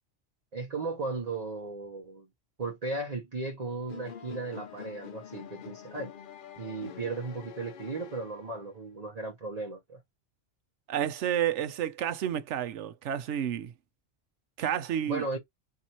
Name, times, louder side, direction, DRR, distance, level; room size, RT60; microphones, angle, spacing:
voice 1, 0.5-2.3 2.6-6.1 6.6-10.0 15.1-15.4, right 3 dB, 35° right, 0.9 m, -36 dB
sound 1, 3.9-8.8, left 8 dB, 55° left, 0.7 m, -46 dB
voice 2, 10.9-13.7 14.6-15.2, right 10 dB, 75° right, 1.0 m, -30 dB
4.2 x 3.5 x 2.9 m
omnidirectional pair, 1.2 m